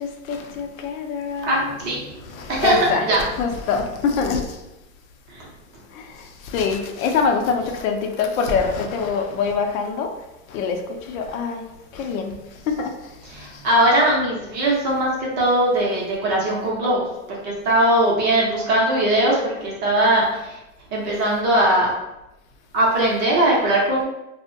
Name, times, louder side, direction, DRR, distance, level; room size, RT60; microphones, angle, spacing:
voice 1, 0.0-1.8 2.3-4.4 5.9-10.1 10.5-10.8 11.1-11.6 11.9-12.3 12.7-12.9, left 5 dB, 80° left, 4 dB, 0.6 m, -24 dB
voice 2, 1.4-2.1 2.5-3.2 5.3-5.5 13.2-20.6 20.9-22.0 22.7-24.0, right 1 dB, 25° right, -4 dB, 0.5 m, -20 dB
2.5 x 2.1 x 2.5 m, 0.92 s
supercardioid pair, 155°, 40 cm